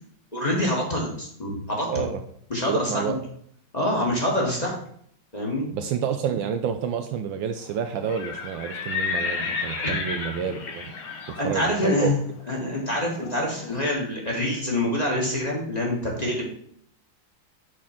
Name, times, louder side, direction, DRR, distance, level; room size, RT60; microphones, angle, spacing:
voice 1, 0.3-1.9 2.5-3.0 3.7-4.8 5.3-5.7 9.8-9.9 11.4-12.1 12.5-16.5, left 1 dB, 20° left, -2 dB, 1.8 m, -26 dB
voice 2, 1.9-2.2 2.7-3.2 5.7-10.9 11.3-12.1, right 7 dB, 75° right, 7 dB, 1.3 m, -29 dB
Livestock farm animals working animals, 7.9-13.8, left 5 dB, 85° left, 2.1 m, -32 dB
7.3 x 4.4 x 5.8 m, 0.65 s
omnidirectional pair, 2.3 m